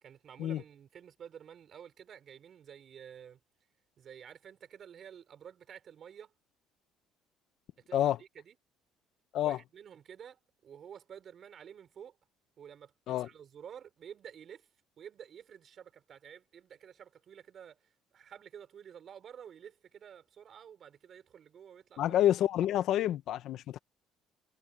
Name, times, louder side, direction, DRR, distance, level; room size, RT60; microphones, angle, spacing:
voice 1, 0.0-3.4 4.0-6.3 7.9-8.6 9.4-12.2 12.6-14.7 15.0-22.1, right 8 dB, 45° right, 4.1 m, -51 dB
voice 2, 22.0-23.8, left 12 dB, 65° left, 0.9 m, -28 dB
cardioid pair, 130°, 0 cm